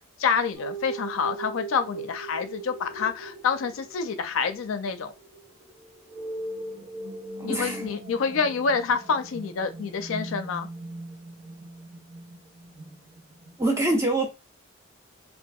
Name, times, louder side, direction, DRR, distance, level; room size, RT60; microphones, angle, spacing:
voice 1, 0.0-5.1 7.4-10.7, left 5 dB, 75° left, 0.4 m, -27 dB
sound 1, 0.5-13.7, right 2 dB, 80° right, 1.1 m, -40 dB
voice 2, 7.4-7.8 13.6-14.3, right 2 dB, 15° right, 0.3 m, -24 dB
2.6 x 2.5 x 2.3 m
head